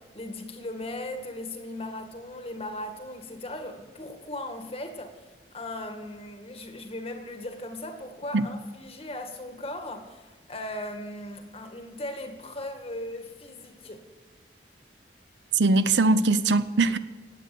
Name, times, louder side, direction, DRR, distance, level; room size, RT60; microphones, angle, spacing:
voice 1, 0.0-5.2 5.5-14.0, left 1 dB, 35° left, 1.9 m, -38 dB
voice 2, 15.5-17.0, right 3 dB, 80° right, 0.8 m, -21 dB
17.0 x 9.2 x 7.7 m
head